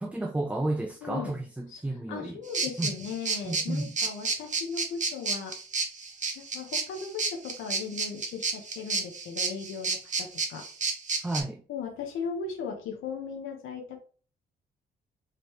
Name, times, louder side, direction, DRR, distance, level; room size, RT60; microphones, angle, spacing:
voice 1, 0.0-2.4 2.8-2.9 3.4-3.9 11.2-11.6, right 2 dB, 5° right, 0.5 m, -32 dB
voice 2, 1.0-1.4 1.7-1.8 2.1-5.6 6.3-10.7 11.7-14.0, left 5 dB, 85° left, 1.0 m, -37 dB
sound 1, 2.5-11.4, right 4 dB, 40° right, 1.1 m, -31 dB
5.0 x 3.1 x 3.1 m
cardioid pair, 90°, 20 cm